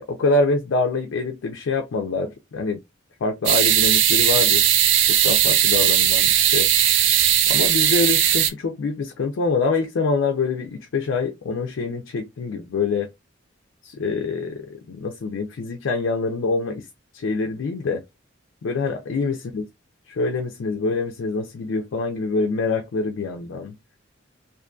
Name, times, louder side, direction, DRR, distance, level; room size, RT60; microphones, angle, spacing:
voice 1, 0.0-2.8 3.2-4.7 5.1-6.7 7.5-13.1 13.8-16.9 17.1-18.0 18.6-19.6 20.1-23.7, left 3 dB, 70° left, 0.4 m, -25 dB
sound 1, 3.5-8.5, right 11 dB, 70° right, 0.4 m, -18 dB
2.5 x 2.5 x 2.2 m
head